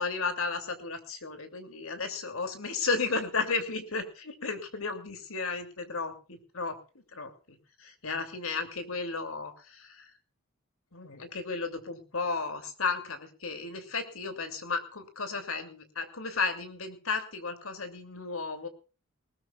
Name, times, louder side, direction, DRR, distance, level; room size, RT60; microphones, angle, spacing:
voice 1, 0.0-6.8 7.1-10.1 10.9-18.7, left 4 dB, 85° left, 8 dB, 2.9 m, -34 dB
20.0 x 19.5 x 2.5 m, 0.35 s
head